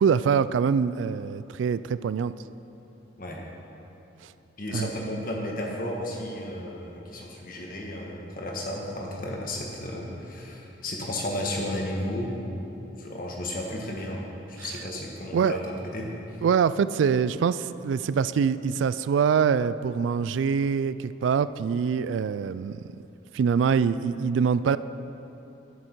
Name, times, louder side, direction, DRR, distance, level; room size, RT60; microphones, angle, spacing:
voice 1, 0.0-2.3 4.7-4.9 14.6-14.7 15.3-15.6 16.4-22.8 23.3-24.8, right 6 dB, 80° right, 15 dB, 0.3 m, -24 dB
voice 2, 4.6-16.4, left 1 dB, 50° left, -1 dB, 1.5 m, -33 dB
11.0 x 9.1 x 4.5 m, 2.9 s
head